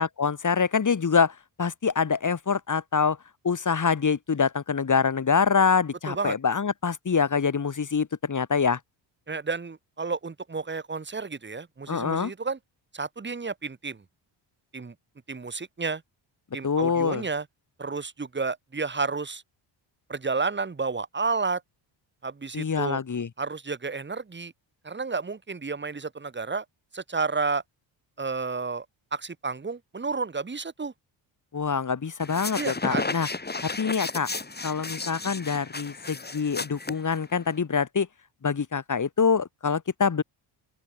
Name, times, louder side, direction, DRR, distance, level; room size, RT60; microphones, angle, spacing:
voice 1, 0.0-3.2 3.4-8.8 11.9-12.3 16.6-17.2 22.5-23.3 31.5-33.3 33.8-34.3 34.6-38.1 38.4-40.2, left 6 dB, 40° left, 5.1 m, -25 dB
voice 2, 9.3-12.6 12.9-14.0 14.7-14.9 15.3-16.0 16.5-17.5 17.8-19.4 20.1-21.6 22.2-23.0 23.4-24.5 24.8-26.6 26.9-27.6 28.2-28.9 29.1-30.9 32.5-33.1, right 4 dB, 25° right, 2.0 m, -31 dB
sound 1, 32.2-37.6, left 3 dB, 20° left, 3.8 m, -34 dB
open air
cardioid pair, 90°, 48 cm